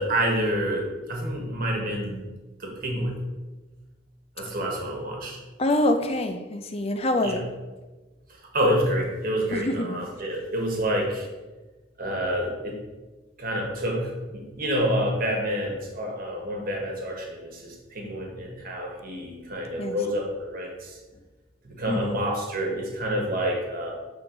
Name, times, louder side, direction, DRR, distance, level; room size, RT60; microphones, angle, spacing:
voice 1, 0.0-2.2 2.6-3.2 4.4-5.4 7.2-7.4 8.5-11.3 12.0-12.7 13.4-21.0 21.6-23.9, equal, 45° right, 0 dB, 1.4 m, -28 dB
voice 2, 5.6-7.5 9.5-10.0 19.8-20.0 21.9-22.2, left 1 dB, 30° left, 7 dB, 0.5 m, -25 dB
7.4 x 3.8 x 3.9 m, 1.2 s
head